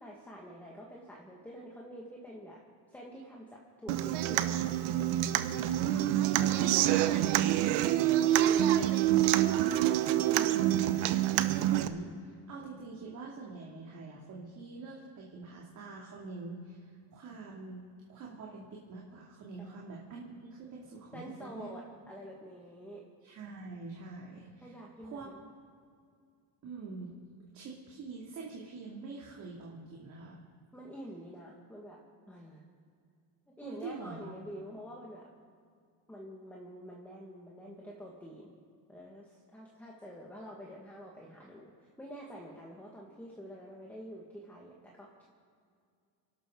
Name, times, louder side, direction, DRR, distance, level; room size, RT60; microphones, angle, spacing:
voice 1, 0.0-2.6 2.9-4.6 6.4-7.4 19.7-19.8 21.1-23.0 24.6-25.4 30.7-32.0 32.3-32.6 33.6-35.3 36.1-38.5 38.9-45.3, equal, 5° left, -3 dB, 1.8 m, -47 dB
Human voice / Acoustic guitar, 3.9-11.9, right 13 dB, 75° right, 1.0 m, -27 dB
voice 2, 5.9-7.0 8.4-17.8 18.1-21.8 23.2-24.8 25.0-25.3 26.6-27.2 27.5-30.4 33.6-34.3, right 4 dB, 45° right, -3 dB, 2.7 m, -44 dB
28.5 x 12.5 x 3.9 m, 2.2 s
cardioid pair, 145°, 40 cm